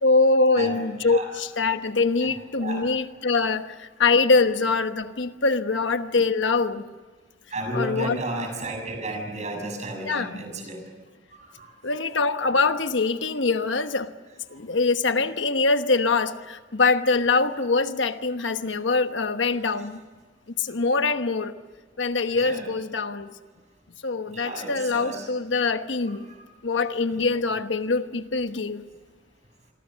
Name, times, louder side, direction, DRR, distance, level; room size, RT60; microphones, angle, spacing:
voice 1, 0.0-6.8 7.7-8.2 10.0-10.4 11.8-14.1 14.5-20.0 20.6-21.5 22.0-23.3 24.0-26.3 26.6-28.8, left 3 dB, 70° left, 9 dB, 1.1 m, -23 dB
voice 2, 2.2-2.8 7.5-10.8 11.4-11.7 22.3-22.7 24.3-25.3 26.1-26.3 27.2-27.3, right 2 dB, 35° right, 4 dB, 6.6 m, -33 dB
28.0 x 23.0 x 6.4 m, 1.4 s
head